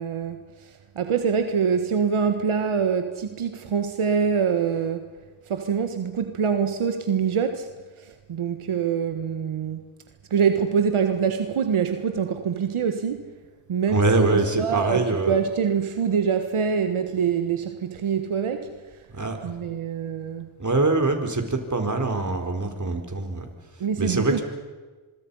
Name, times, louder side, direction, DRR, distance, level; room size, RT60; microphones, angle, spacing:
voice 1, 0.0-5.0 5.5-7.7 8.0-9.8 10.3-13.3 13.7-18.7 19.4-20.5 23.8-24.4, right 6 dB, 80° right, 1.6 m, -25 dB
voice 2, 13.9-15.4 19.1-19.5 20.6-23.5 24.0-24.4, right 2 dB, 35° right, 4.5 m, -24 dB
25.5 x 23.5 x 5.6 m
cardioid pair, 60°, 49 cm